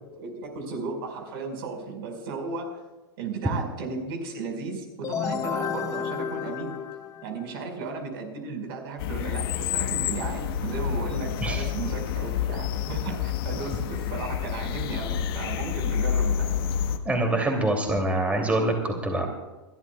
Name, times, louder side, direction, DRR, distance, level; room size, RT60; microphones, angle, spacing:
voice 1, 0.1-2.8 3.2-6.8 7.2-16.5, right 4 dB, 60° right, 3 dB, 5.0 m, -35 dB
sound 1, 5.0-7.7, left 8 dB, 25° left, 0.9 m, -32 dB
sound 2, 9.0-17.0, left 9 dB, 60° left, 1.4 m, -28 dB
voice 2, 17.0-19.3, right 1 dB, 10° right, 2 dB, 2.8 m, -25 dB
29.5 x 12.5 x 2.4 m, 1.2 s
hypercardioid pair, 120°, 14 cm